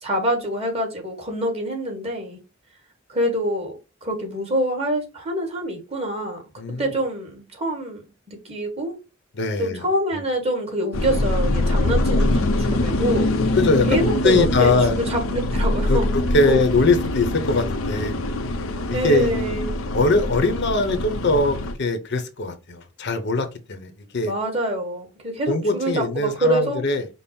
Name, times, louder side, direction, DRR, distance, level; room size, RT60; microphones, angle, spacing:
voice 1, 0.0-2.4 3.1-6.4 6.8-9.0 9.6-13.3 13.9-16.1 16.4-16.6 18.9-19.8 24.2-26.8, right 1 dB, 30° right, 1.5 m, -25 dB
voice 2, 6.6-6.9 9.4-9.8 13.5-14.0 14.2-15.0 15.9-16.0 16.3-18.1 18.9-19.3 19.9-24.3 25.5-27.0, left 3 dB, 60° left, 0.8 m, -21 dB
sound 1, 10.9-21.7, left 1 dB, 90° left, 0.7 m, -23 dB
5.3 x 2.0 x 4.2 m
head